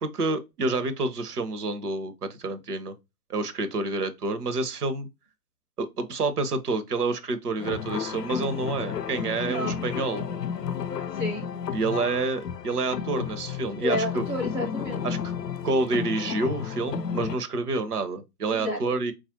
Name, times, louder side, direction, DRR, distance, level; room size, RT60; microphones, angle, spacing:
voice 1, 0.0-2.9 3.3-5.1 5.8-10.2 11.7-14.2 15.0-15.2 15.6-19.1, right 3 dB, 70° right, 0.7 m, -28 dB
sound 1, 7.6-17.4, left 7 dB, 85° left, 0.6 m, -32 dB
voice 2, 9.4-9.8 11.1-11.4 13.8-15.0 18.5-18.8, left 1 dB, 5° right, 0.5 m, -30 dB
4.2 x 2.4 x 2.6 m
figure-of-eight pair, 115°, 47 cm